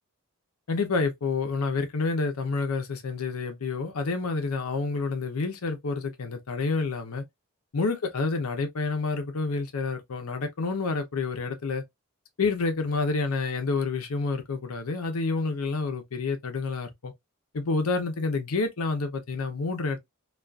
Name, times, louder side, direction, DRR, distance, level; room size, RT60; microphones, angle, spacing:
voice 1, 0.7-7.2 7.7-11.8 12.4-17.1 17.5-20.0, left 3 dB, 80° left, 0.7 m, -28 dB
2.4 x 2.3 x 2.4 m
head